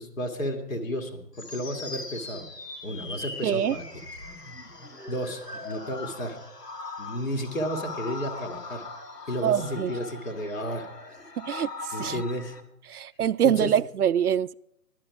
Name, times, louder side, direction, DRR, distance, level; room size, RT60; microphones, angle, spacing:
voice 1, 0.0-2.5 2.8-3.8 5.1-6.4 7.0-8.8 9.3-10.9 11.9-12.6 13.4-13.7, equal, 55° left, 2.2 m, -32 dB
sound 1, 1.3-12.6, left 3 dB, 90° left, 2.0 m, -40 dB
voice 2, 3.4-3.8 9.4-9.9 11.4-11.7 12.0-12.2 12.9-14.5, right 9 dB, 70° right, 0.6 m, -24 dB
16.5 x 11.5 x 4.8 m
figure-of-eight pair, 145°, 47 cm